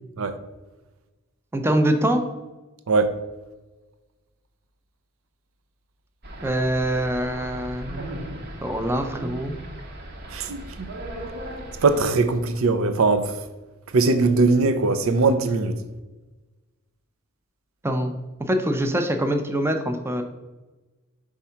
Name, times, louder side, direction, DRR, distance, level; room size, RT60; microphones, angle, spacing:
voice 1, 1.5-2.2 6.4-8.1 8.6-9.6 17.8-18.1 18.4-20.2, right 1 dB, 10° right, 0.5 m, -24 dB
sound 1, 6.2-12.0, right 1 dB, 50° right, 0.9 m, -37 dB
voice 2, 10.3-10.9 11.8-13.3 13.9-15.8, right 3 dB, 75° right, 0.6 m, -20 dB
5.5 x 3.6 x 5.6 m
head